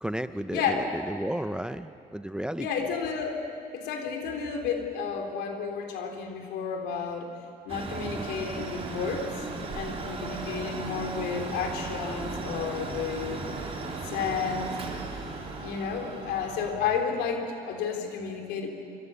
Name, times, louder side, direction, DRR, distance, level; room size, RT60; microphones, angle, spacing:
voice 1, 0.0-2.7 8.0-8.3, right 1 dB, 5° right, 12 dB, 0.6 m, -33 dB
voice 2, 0.5-0.9 2.6-3.4 3.7-7.3 7.6-9.4 9.7-13.4 14.0-14.7 15.6-18.7, left 6 dB, 85° left, 4 dB, 3.5 m, -31 dB
Mechanical fan, 7.7-16.8, right 3 dB, 35° right, 3.7 m, -36 dB
26.0 x 25.0 x 7.0 m, 2.5 s
cardioid pair, 110°, 17 cm